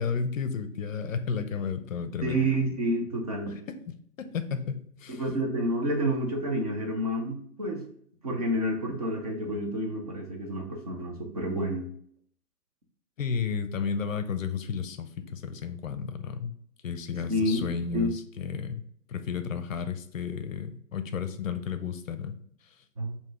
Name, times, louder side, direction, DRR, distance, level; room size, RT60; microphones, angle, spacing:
voice 1, 0.0-2.5 3.7-3.8 4.2-5.2 13.2-16.5 16.8-18.8 19.1-22.3, left 6 dB, 55° left, 10 dB, 0.6 m, -32 dB
voice 2, 2.2-3.5 5.1-7.8 8.2-11.9 17.3-18.1 23.0-23.2, right 1 dB, 25° right, 1 dB, 0.7 m, -29 dB
4.6 x 2.9 x 3.6 m, 0.65 s
hypercardioid pair, 145°, 48 cm